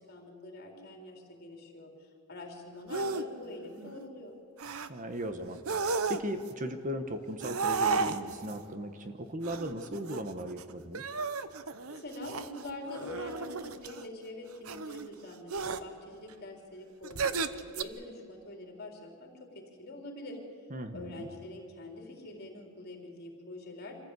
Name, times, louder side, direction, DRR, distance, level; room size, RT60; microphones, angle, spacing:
voice 1, 0.0-4.3 11.9-20.4 20.9-24.0, left 1 dB, 50° left, 1 dB, 3.9 m, -45 dB
sound 1, 2.9-3.2 3.6-4.0 4.6-4.9 5.6-6.5 7.4-8.5 9.4-10.6 10.9-14.0 14.7-15.1 15.5-15.8 17.0-17.8, right 4 dB, 80° right, 0.9 m, -33 dB
voice 2, 4.9-11.1 20.7-21.3, equal, 40° right, 8 dB, 1.3 m, -37 dB
25.5 x 15.0 x 8.3 m, 2.8 s
head